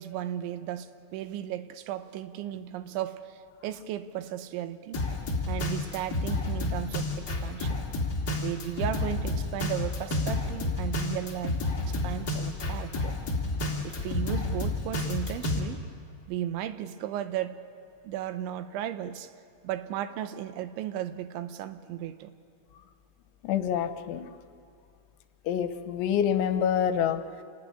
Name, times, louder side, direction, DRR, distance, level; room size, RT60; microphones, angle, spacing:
voice 1, 0.0-5.0 5.5-7.8 8.4-11.6 11.9-13.1 13.8-15.8 16.3-17.6 18.0-19.3 19.6-22.3, right 11 dB, 80° right, 11 dB, 3.1 m, -35 dB
Drum kit, 4.9-15.6, left 2 dB, 30° left, 2.3 m, -30 dB
voice 2, 23.4-24.2 25.5-27.2, left 9 dB, 80° left, 9 dB, 3.2 m, -26 dB
27.0 x 17.5 x 9.9 m, 2.3 s
omnidirectional pair, 5.5 m